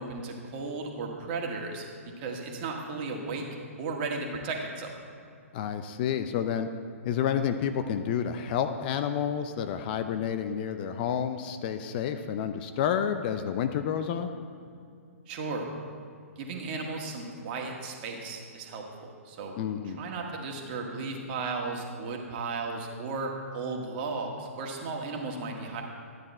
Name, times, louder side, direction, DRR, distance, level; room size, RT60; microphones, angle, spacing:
voice 1, 0.0-1.8 2.2-3.5 3.8-4.9 15.3-15.7 16.4-19.5 19.8-25.8, right 3 dB, 40° right, 1 dB, 1.8 m, -35 dB
voice 2, 5.5-6.7 7.0-14.3 19.6-20.0, left 8 dB, 40° left, 9 dB, 0.6 m, -29 dB
13.0 x 9.4 x 4.3 m, 2.4 s
figure-of-eight pair, 125°, 8 cm